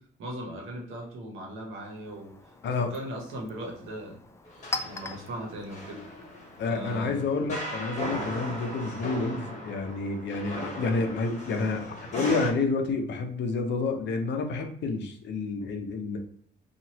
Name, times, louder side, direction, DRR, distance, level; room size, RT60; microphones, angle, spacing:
voice 1, 0.2-4.2 4.7-6.0 6.6-7.2, right 1 dB, 90° right, -1 dB, 1.0 m, -38 dB
Chink clink, 1.8-7.3, left 3 dB, 15° left, 0.3 m, -42 dB
voice 2, 2.6-2.9 6.6-16.2, left 3 dB, 65° left, 5 dB, 0.6 m, -29 dB
sound 1, 4.5-12.5, equal, 35° left, 1.0 m, -38 dB
2.9 x 2.4 x 2.8 m, 0.62 s
cardioid pair, 90°, 20 cm